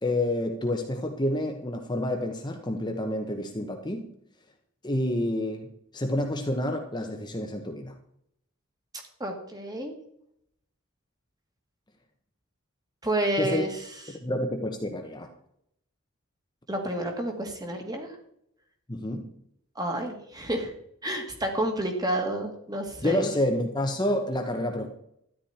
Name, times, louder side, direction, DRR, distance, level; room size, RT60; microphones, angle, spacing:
voice 1, 0.0-4.1 4.8-7.9 13.4-13.6 14.2-15.3 18.9-19.3 23.0-24.9, left 1 dB, 20° left, 3 dB, 1.1 m, -29 dB
voice 2, 9.2-9.9 13.0-13.8 16.7-18.1 19.8-20.7 21.0-23.3, right 1 dB, 20° right, 3 dB, 2.0 m, -30 dB
13.0 x 10.5 x 4.3 m, 0.72 s
head